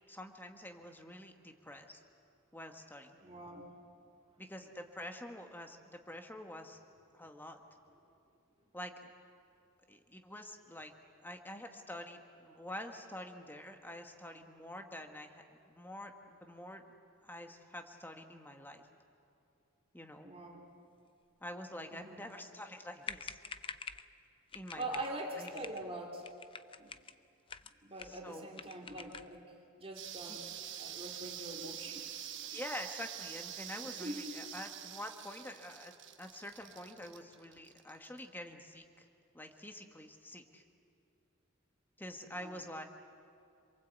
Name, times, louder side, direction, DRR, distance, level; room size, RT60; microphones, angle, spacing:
voice 1, 0.1-2.0 2.5-3.1 4.4-6.8 7.1-7.6 8.7-9.1 9.9-10.9 11.2-16.8 17.2-18.8 19.9-20.3 21.4-23.4 24.5-25.0 25.4-25.5 28.0-28.6 30.3-30.4 32.4-35.9 36.2-39.1 39.3-40.6 42.0-42.8, left 1 dB, 10° left, 4 dB, 1.5 m, -47 dB
voice 2, 3.2-3.7 20.2-20.7 21.9-22.2 24.8-26.2 26.8-26.9 27.8-29.4 29.7-30.4 30.8-32.3 34.0-34.4 42.3-42.5, right 1 dB, 30° right, -1 dB, 2.8 m, -43 dB
sound 1, 22.8-22.9 23.0-24.1 24.5-25.1 25.4-25.8 26.2-27.1 27.5-28.2 28.5-29.3, left 5 dB, 25° left, 0.6 m, -46 dB
sound 2, 30.0-38.3, right 10 dB, 60° right, 1.2 m, -46 dB
27.0 x 23.0 x 8.2 m, 2.5 s
head